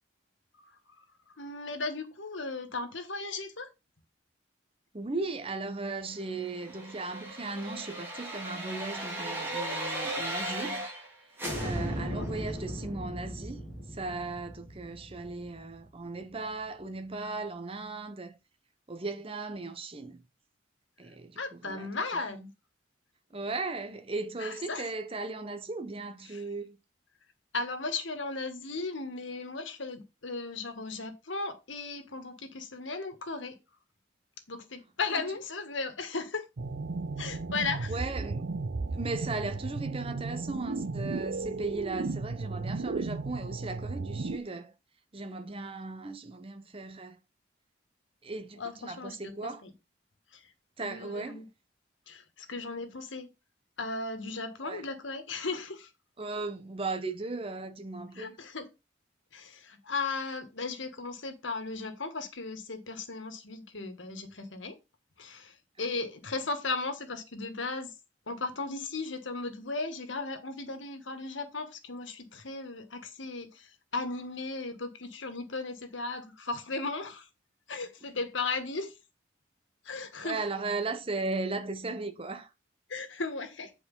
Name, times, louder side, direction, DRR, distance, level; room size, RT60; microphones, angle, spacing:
voice 1, 0.6-1.0 1.4-3.7 12.0-12.4 21.4-22.5 24.4-24.9 26.3-26.4 27.5-33.6 34.5-36.5 37.2-38.0 48.6-49.7 50.3-50.5 50.8-51.4 52.1-53.3 53.8-55.9 58.1-58.7 59.3-64.8 65.2-67.9 68.3-77.3 77.7-79.0 79.8-80.4 82.9-83.7, left 3 dB, 80° left, 1.6 m, -36 dB
voice 2, 4.9-10.9 11.6-13.6 13.9-18.4 18.9-20.2 21.0-21.9 23.3-26.8 35.1-35.2 37.9-38.5 38.9-44.7 45.1-47.2 48.2-49.6 50.8-51.4 54.6-54.8 56.2-58.4 80.2-82.5, right 3 dB, 30° right, 0.9 m, -37 dB
sound 1, 6.4-11.1 11.4-16.2 16.6-16.7, right 1 dB, 10° right, 3.3 m, -37 dB
sound 2, 36.6-44.4, right 3 dB, 60° right, 0.6 m, -34 dB
8.4 x 4.7 x 5.4 m
head